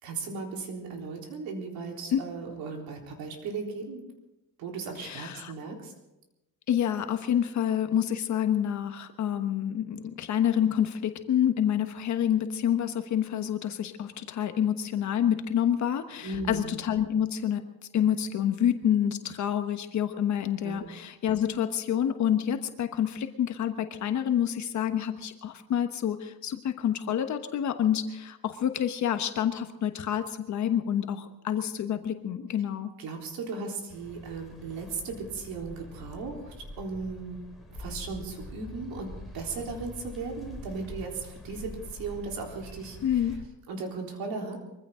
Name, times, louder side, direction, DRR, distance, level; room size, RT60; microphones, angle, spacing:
voice 1, 0.0-4.1 4.6-5.9 16.2-16.7 20.6-20.9 33.0-37.4 37.8-43.0 43.7-44.6, right 4 dB, 85° right, 0 dB, 3.9 m, -36 dB
voice 2, 5.0-5.5 6.7-17.6 17.9-32.9 43.0-43.3, left 9 dB, 55° left, 7 dB, 1.2 m, -28 dB
sound 1, 33.9-43.4, left 1 dB, ahead, 4.5 m, -45 dB
23.0 x 15.5 x 3.8 m, 0.96 s
cardioid pair, 135°, 35 cm